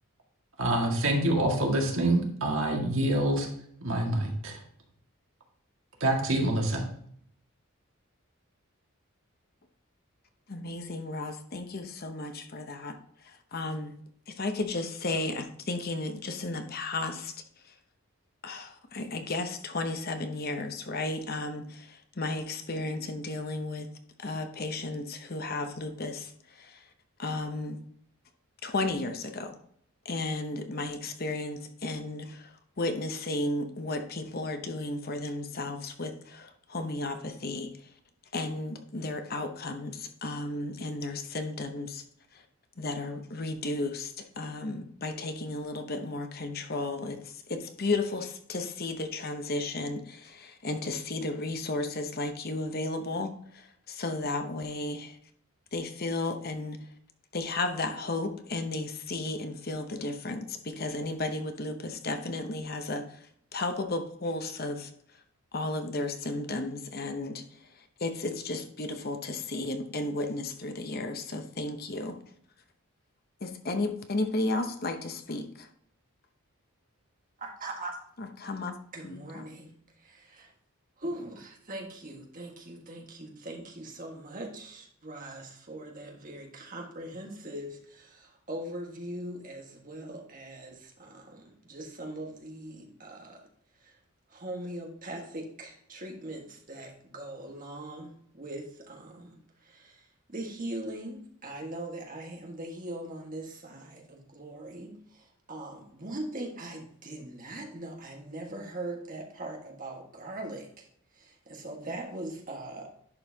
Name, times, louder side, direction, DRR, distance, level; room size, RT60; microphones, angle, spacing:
voice 1, 0.6-3.5 3.8-4.6 6.0-6.9, right 1 dB, 65° right, 0 dB, 1.9 m, -26 dB
voice 2, 10.5-13.9 14.3-17.7 18.4-23.9 24.2-26.9 27.2-27.8 28.6-29.6 30.0-37.9 38.3-42.0 42.3-42.4 42.8-55.2 55.7-56.9 57.3-65.2 65.5-72.2 73.4-75.7 78.2-78.7 79.0-79.5, left 2 dB, 45° left, 7 dB, 0.8 m, -34 dB
voice 3, 77.4-78.0 78.9-79.7 80.0-80.5 81.0-93.4 93.8-94.0 94.3-110.9 111.1-112.9, right 1 dB, 35° right, 1 dB, 1.5 m, -41 dB
10.5 x 5.6 x 2.8 m, 0.66 s
head